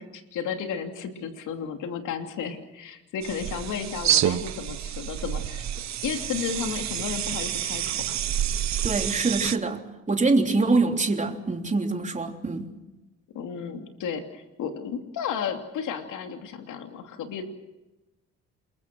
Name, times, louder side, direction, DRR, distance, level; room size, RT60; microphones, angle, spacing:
voice 1, 0.0-5.6 6.0-8.0 9.0-9.1 13.3-17.4, left 7 dB, 80° left, 5 dB, 2.9 m, -33 dB
sound 1, 3.2-9.6, right 11 dB, 65° right, 1.0 m, -28 dB
voice 2, 8.8-12.7, right 3 dB, 25° right, 3 dB, 3.3 m, -24 dB
28.0 x 22.0 x 6.2 m, 1.0 s
cardioid pair, 90°, 30 cm